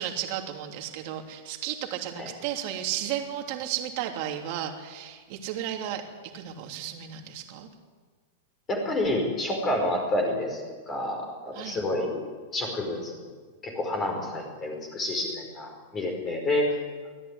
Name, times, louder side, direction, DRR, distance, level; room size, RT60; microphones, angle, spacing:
voice 1, 0.0-6.0 6.3-7.7 11.5-11.8, right 11 dB, 40° right, 3 dB, 3.2 m, -33 dB
voice 2, 8.7-10.6 10.9-12.2 12.5-13.1 13.6-16.7, left 1 dB, 15° left, 2 dB, 5.1 m, -29 dB
24.0 x 17.0 x 9.8 m, 1.5 s
supercardioid pair, 170°, 0 cm